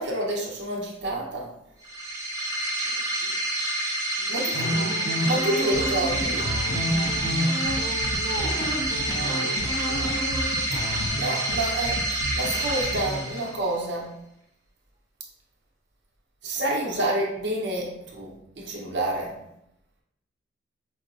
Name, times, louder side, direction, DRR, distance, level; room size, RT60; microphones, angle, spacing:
voice 1, 0.0-1.5 4.3-4.7 5.2-6.4 11.1-14.1 16.4-19.4, right 1 dB, 60° right, -3 dB, 0.8 m, -28 dB
sound 1, 1.8-13.8, right 1 dB, 15° right, 0.4 m, -28 dB
voice 2, 2.8-3.3 4.2-6.4 8.1-8.7 9.1-10.3 16.8-17.1, right 2 dB, 90° right, -3 dB, 0.5 m, -39 dB
sound 2, 4.5-8.1 8.3-11.1, equal, 40° left, 0.8 m, -30 dB
sound 3, 5.7-13.3, equal, 75° left, 0.5 m, -34 dB
5.0 x 2.0 x 2.6 m, 0.79 s
head